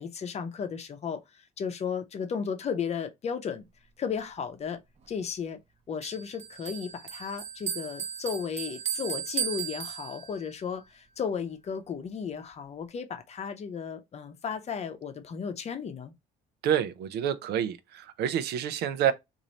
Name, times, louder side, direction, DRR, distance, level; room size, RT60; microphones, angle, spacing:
voice 1, 0.0-3.7 4.0-4.8 5.1-5.6 5.9-16.1, left 6 dB, 40° left, 0.7 m, -34 dB
Bell, 6.0-10.5, right 8 dB, 40° right, 0.8 m, -36 dB
voice 2, 16.6-19.1, right 9 dB, 75° right, 0.6 m, -28 dB
3.0 x 2.7 x 4.0 m
cardioid pair, 110°, 17 cm